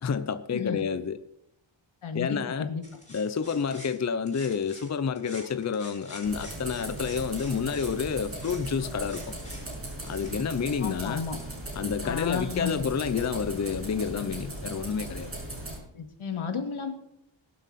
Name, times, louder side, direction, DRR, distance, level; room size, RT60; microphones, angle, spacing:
voice 1, 0.0-1.2 2.1-2.7 3.1-9.3 10.1-11.3 11.7-15.3, left 6 dB, 35° left, 0.6 m, -29 dB
voice 2, 0.5-0.8 2.0-2.8 10.8-11.4 12.0-12.9 15.9-16.9, left 6 dB, 85° left, 2.4 m, -33 dB
sound 1, 2.8-4.9 5.2-11.5, left 1 dB, 15° left, 6.1 m, -48 dB
sound 2, 6.2-15.8, right 1 dB, 25° right, 6.4 m, -38 dB
23.0 x 7.8 x 4.2 m
wide cardioid pair, 155°, 48 cm